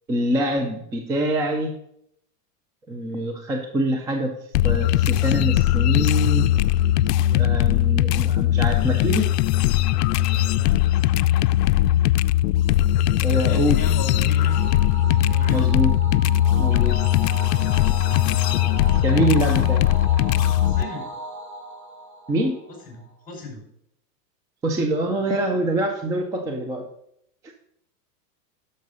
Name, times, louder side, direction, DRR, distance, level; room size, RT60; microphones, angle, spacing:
voice 1, 0.1-1.7 2.9-4.4 4.6-6.5 7.3-9.3 13.2-13.8 15.5-16.0 16.6-17.0 19.0-19.9 22.3-22.6 24.6-26.8, right 1 dB, 5° right, 4 dB, 0.4 m, -25 dB
sound 1, 4.5-20.8, left 13 dB, 75° left, 0.5 m, -20 dB
voice 2, 13.4-14.7 15.1-15.7 20.6-21.0 22.8-23.6, left 4 dB, 15° left, 0 dB, 4.8 m, -34 dB
sound 2, 14.4-23.0, right 1 dB, 90° right, 2.9 m, -36 dB
10.5 x 6.6 x 5.4 m, 0.74 s
supercardioid pair, 135°, 50 cm